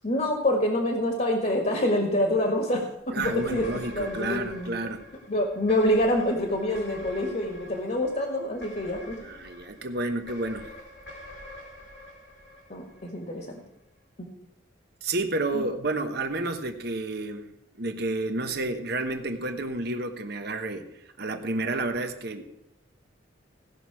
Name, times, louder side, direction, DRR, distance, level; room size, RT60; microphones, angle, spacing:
voice 1, 0.0-3.7 3.9-4.8 5.3-9.2 12.7-13.6 15.5-15.7, left 1 dB, 40° left, 2 dB, 1.7 m, -26 dB
voice 2, 3.1-5.0 9.2-10.7 15.0-17.5 17.8-20.9 21.2-22.4, right 2 dB, 55° right, 6 dB, 1.1 m, -30 dB
sound 1, 3.2-13.6, left 1 dB, 75° left, 2.4 m, -46 dB
17.5 x 6.0 x 4.8 m, 0.85 s
head